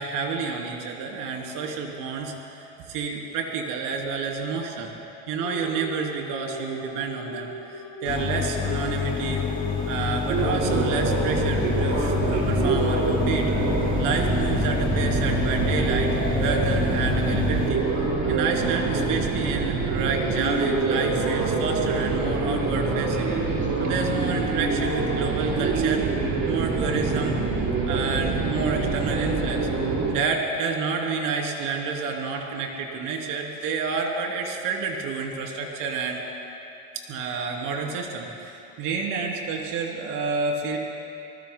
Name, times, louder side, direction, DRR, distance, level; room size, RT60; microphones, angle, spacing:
voice 1, 0.0-4.9 5.3-7.5 8.0-9.4 9.9-13.5 14.0-17.8 18.3-23.3 23.8-26.0 26.5-27.4 27.9-29.7 30.1-36.2 36.9-40.8, right 5 dB, 70° right, 0 dB, 3.1 m, -29 dB
sound 1, 5.4-25.3, left 2 dB, 55° left, 4.1 m, -38 dB
sound 2, 8.1-17.7, left 5 dB, 25° left, 2.2 m, -28 dB
sound 3, 10.3-30.1, right 4 dB, 55° right, 4.4 m, -25 dB
28.0 x 19.5 x 2.2 m, 2.9 s
supercardioid pair, 100°, 34 cm